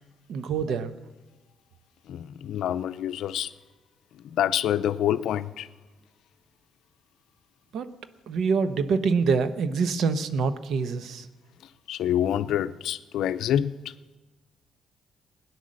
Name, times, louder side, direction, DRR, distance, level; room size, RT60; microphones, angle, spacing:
voice 1, 0.3-0.9 7.7-7.9 8.3-11.3, right 5 dB, 70° right, 11 dB, 0.9 m, -25 dB
voice 2, 2.1-3.5 4.2-5.7 11.9-13.9, left 10 dB, 80° left, 14 dB, 0.5 m, -27 dB
17.5 x 9.9 x 6.4 m, 1.2 s
cardioid pair, 90°, 0 cm